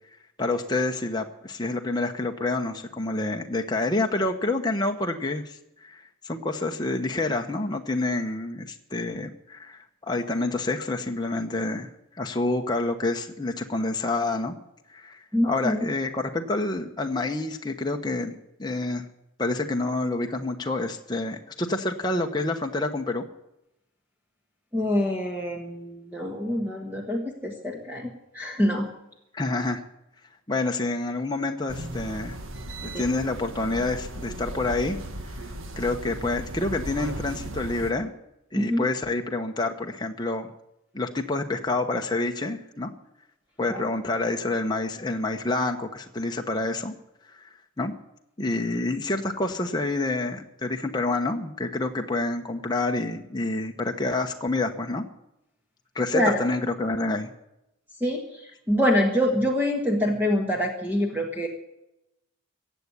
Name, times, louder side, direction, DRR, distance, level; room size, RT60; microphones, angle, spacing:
voice 1, 0.4-11.9 12.2-14.5 14.9-19.0 19.4-23.3 29.3-29.8 30.5-32.4 32.8-35.0 35.8-38.1 38.5-40.5 40.9-42.9 43.6-46.9 47.3-47.5 47.8-47.9 48.4-55.0 55.9-57.3, left 2 dB, 20° left, 3 dB, 1.0 m, -28 dB
voice 2, 15.3-15.9 24.7-28.9 32.9-33.0 38.5-38.9 43.7-43.8 56.1-56.4 58.0-61.5, equal, 10° right, 0 dB, 1.6 m, -25 dB
sound 1, 31.7-37.9, right 1 dB, 70° right, 1.7 m, -36 dB
15.5 x 8.2 x 9.7 m, 0.87 s
head